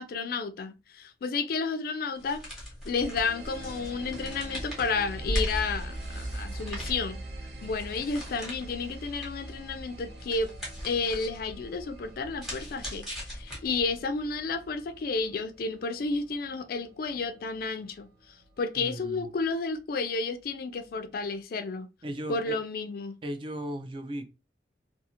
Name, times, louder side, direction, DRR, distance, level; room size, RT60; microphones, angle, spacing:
voice 1, 0.0-2.4 2.8-7.2 7.6-10.5 10.8-18.1 18.6-21.9 22.3-23.1, left 4 dB, 55° left, 0.3 m, -31 dB
sound 1, 2.2-14.0, equal, 5° right, 1.0 m, -39 dB
sound 2, 3.0-18.4, right 2 dB, 60° right, 0.8 m, -45 dB
voice 2, 18.8-19.3 22.0-22.6 23.2-24.3, right 1 dB, 30° right, 0.3 m, -36 dB
2.4 x 2.4 x 2.8 m
head